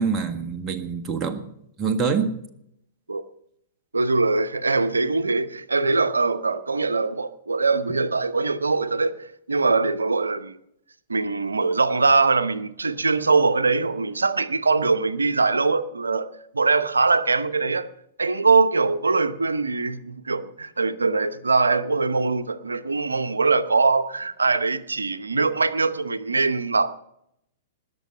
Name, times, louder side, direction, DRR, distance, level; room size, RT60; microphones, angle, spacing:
voice 1, 0.0-1.5 1.8-2.3, right 5 dB, 25° right, 1.5 m, -25 dB
voice 2, 3.9-9.2 9.5-10.6 11.1-16.3 16.5-17.9 18.2-26.9, right 3 dB, 85° right, 0.8 m, -22 dB
20.0 x 7.0 x 5.6 m
figure-of-eight pair, 105°, 0 cm